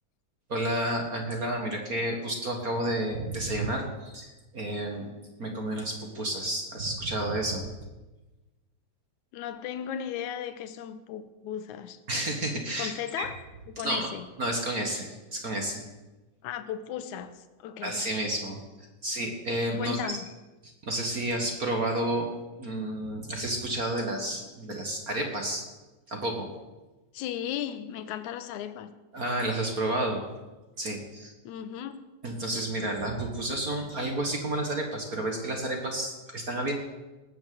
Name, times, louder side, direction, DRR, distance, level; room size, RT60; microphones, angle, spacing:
voice 1, 0.5-5.1 5.4-7.7 12.1-13.3 13.8-14.1 14.4-15.8 17.8-20.2 20.8-22.3 22.6-25.6 26.1-26.5 29.1-30.2 30.8-31.3 32.2-36.7, right 1 dB, 40° right, 1.5 m, -31 dB
voice 2, 9.3-12.0 12.8-13.4 13.7-14.3 16.4-18.0 19.8-20.3 27.1-28.9 31.4-32.0, left 9 dB, 85° left, 2.3 m, -36 dB
18.5 x 7.2 x 7.6 m
omnidirectional pair, 3.3 m